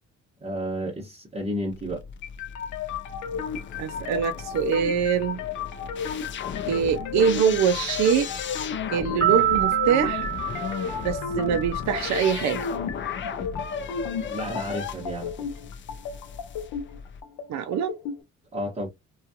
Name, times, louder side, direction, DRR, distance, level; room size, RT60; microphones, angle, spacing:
voice 1, 0.4-2.0 14.3-15.5 18.5-18.9, equal, 25° right, 1.0 m, -31 dB
sound 1, 1.7-17.2, left 7 dB, 40° left, 0.4 m, -36 dB
sound 2, 2.2-18.2, left 7 dB, 90° left, 0.6 m, -34 dB
voice 2, 3.8-5.4 6.7-8.3 8.9-10.3 11.0-12.7 17.5-18.0, right 8 dB, 65° right, 0.5 m, -24 dB
sound 3, 9.2-11.7, right 12 dB, 10° left, 1.1 m, -26 dB
2.4 x 2.3 x 2.7 m
cardioid pair, 90°, 30 cm